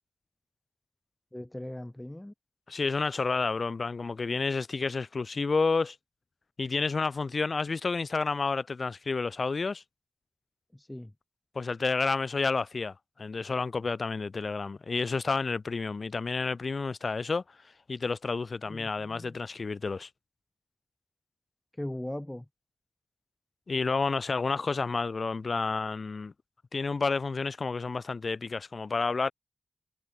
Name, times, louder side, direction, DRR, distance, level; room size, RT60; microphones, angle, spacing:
voice 1, 1.3-2.3 10.7-11.1 18.7-19.4 21.7-22.5, left 1 dB, 15° left, 4.0 m, -39 dB
voice 2, 2.7-6.0 6.6-9.8 11.5-17.4 17.9-20.1 23.7-26.3 26.7-29.3, left 4 dB, 60° left, 0.6 m, -30 dB
cardioid pair, 55°, 0 cm